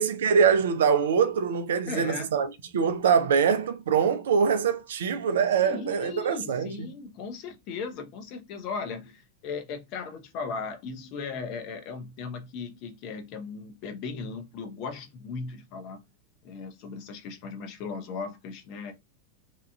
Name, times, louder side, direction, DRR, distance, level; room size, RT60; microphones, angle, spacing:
voice 1, 0.0-6.9, right 6 dB, 60° right, 0.4 m, -24 dB
voice 2, 1.9-2.3 5.6-16.0 16.4-18.9, left 5 dB, 40° left, 0.7 m, -37 dB
2.9 x 2.4 x 2.2 m
figure-of-eight pair, 90°, 0 cm